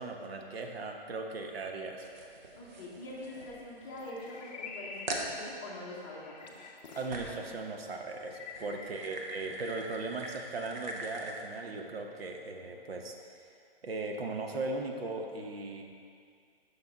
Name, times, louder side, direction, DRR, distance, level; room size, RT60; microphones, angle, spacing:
voice 1, 0.0-2.1 7.0-13.4 13.8-15.8, right 3 dB, 75° right, 3 dB, 0.9 m, -38 dB
sound 1, 2.0-4.1 4.5-4.6 5.1-5.4 7.1-7.5 8.2-11.5, right 2 dB, 50° right, 0.8 m, -42 dB
voice 2, 2.5-6.5 8.6-8.7, left 2 dB, 20° left, -5 dB, 0.9 m, -44 dB
sound 2, 3.2-7.7 8.2-8.9, left 4 dB, 45° left, 0.6 m, -48 dB
5.8 x 5.7 x 3.9 m, 2.2 s
hypercardioid pair, 160°, 30 cm